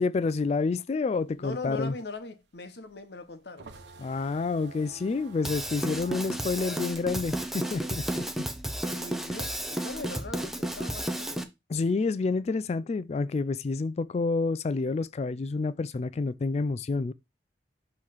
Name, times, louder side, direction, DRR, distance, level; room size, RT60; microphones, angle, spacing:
voice 1, 0.0-1.9 4.0-8.5 11.7-17.1, left 4 dB, 35° left, 0.3 m, -29 dB
sound 1, 1.2-8.3 8.6-10.4, right 3 dB, 75° right, 1.0 m, -50 dB
voice 2, 1.4-3.7 8.9-11.5, left 3 dB, 65° left, 0.9 m, -40 dB
Drum kit / Drum, 5.4-11.4, right 1 dB, ahead, 0.7 m, -32 dB
6.5 x 3.1 x 5.5 m
head